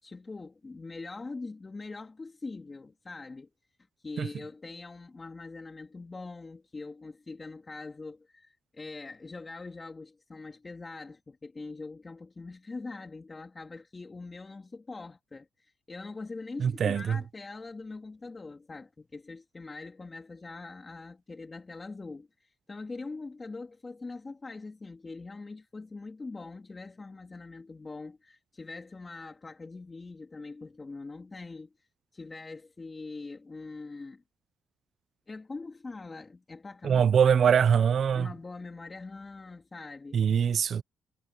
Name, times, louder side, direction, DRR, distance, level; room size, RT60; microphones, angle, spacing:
voice 1, 0.0-3.5 4.0-34.2 35.3-37.5 38.1-40.2, left 3 dB, 25° left, 2.9 m, -43 dB
voice 2, 16.6-17.2 36.8-38.3 40.1-40.8, right 7 dB, 55° right, 0.9 m, -23 dB
cardioid pair, 90°, 0 cm